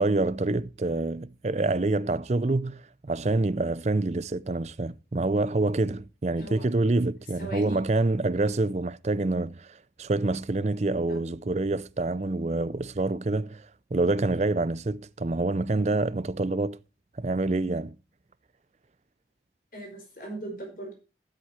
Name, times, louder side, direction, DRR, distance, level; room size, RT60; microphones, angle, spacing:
voice 1, 0.0-16.8 17.2-17.9, right 2 dB, 40° right, 0.5 m, -27 dB
voice 2, 6.4-6.7 7.4-7.8 11.1-11.2 19.7-20.9, right 2 dB, 50° left, 5.1 m, -38 dB
13.0 x 7.9 x 4.4 m
head